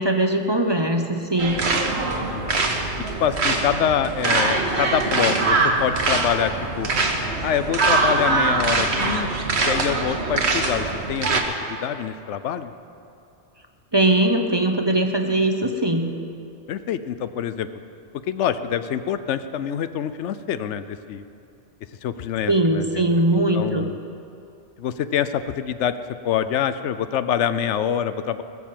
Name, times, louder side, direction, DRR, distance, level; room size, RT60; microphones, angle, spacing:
voice 1, 0.0-1.6 13.9-16.1 22.5-23.9, right 1 dB, 25° right, 4 dB, 0.7 m, -20 dB
sound 1, 1.4-11.4, right 3 dB, 70° right, 1.4 m, -23 dB
voice 2, 3.1-6.9 7.4-9.3 9.6-11.3 11.7-12.7 16.7-17.7 18.3-21.2 22.0-23.2 23.5-24.0 24.8-25.9 26.2-28.4, left 9 dB, 85° left, 12 dB, 0.9 m, -25 dB
20.0 x 7.1 x 7.5 m, 2.7 s
omnidirectional pair, 1.2 m